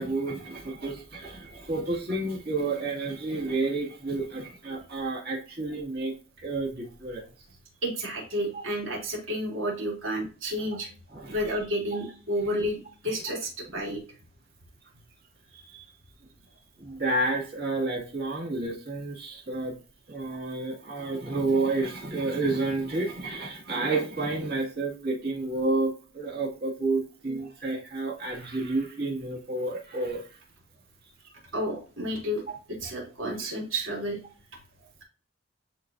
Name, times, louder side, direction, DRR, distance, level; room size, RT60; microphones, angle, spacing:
voice 1, 0.0-7.2 8.5-8.6 11.1-11.5 16.8-19.7 20.1-30.3, right 2 dB, 50° right, -3 dB, 2.2 m, -30 dB
voice 2, 7.8-10.9 11.3-14.0 15.5-15.9 31.5-32.4 32.7-34.2, equal, 90° right, -2 dB, 3.1 m, -31 dB
10.5 x 3.8 x 2.7 m, 0.37 s
head